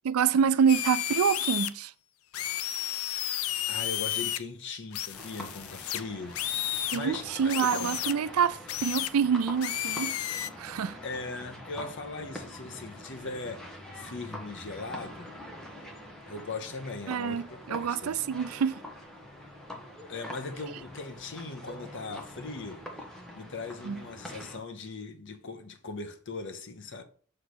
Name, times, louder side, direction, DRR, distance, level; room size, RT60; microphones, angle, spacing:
voice 1, 0.0-1.9 6.9-10.2 10.6-11.0 17.1-18.8 23.9-24.0, right 7 dB, 90° right, 0.4 m, -27 dB
sound 1, 0.7-1.7 2.3-4.4 4.9-7.0 7.5-8.1 8.7-9.1 9.6-10.5, left 12 dB, 75° left, 0.4 m, -32 dB
voice 2, 3.7-8.1 11.0-15.3 16.3-18.2 19.7-19.8 20.1-22.9 23.3-27.0, left 3 dB, 60° left, 0.9 m, -39 dB
sound 2, 5.1-24.6, left 1 dB, 5° left, 1.1 m, -45 dB
6.8 x 3.3 x 5.9 m
head